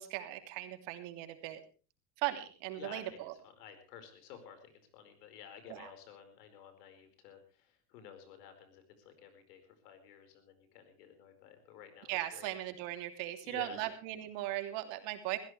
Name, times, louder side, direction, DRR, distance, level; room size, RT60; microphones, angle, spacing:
voice 1, 0.0-1.6 2.2-3.3 5.7-5.9 12.1-15.4, right 15 dB, 70° right, 7 dB, 3.1 m, -38 dB
voice 2, 2.7-3.2 3.4-12.5 13.4-13.9, left 8 dB, 90° left, 8 dB, 4.9 m, -53 dB
22.0 x 15.5 x 3.3 m, 0.35 s
supercardioid pair, 110°, 46 cm